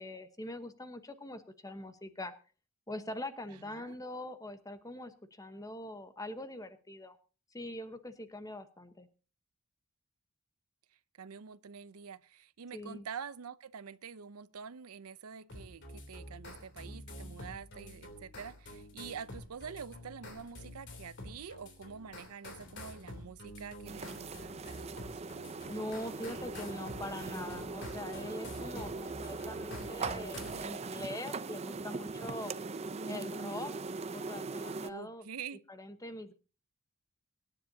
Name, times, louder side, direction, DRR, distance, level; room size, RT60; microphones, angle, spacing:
voice 1, 0.0-2.3 2.9-7.2 7.5-9.1 12.7-13.1 25.7-32.5 33.1-33.7 34.1-35.3 35.7-36.3, left 1 dB, 15° left, 1.0 m, -43 dB
voice 2, 3.6-3.9 11.2-25.2 34.9-35.6, right 6 dB, 85° right, 0.6 m, -46 dB
sound 1, 15.5-30.7, left 1 dB, 55° left, 3.2 m, -48 dB
sound 2, 23.9-34.9, right 4 dB, 30° right, 0.5 m, -40 dB
24.5 x 10.0 x 2.8 m
head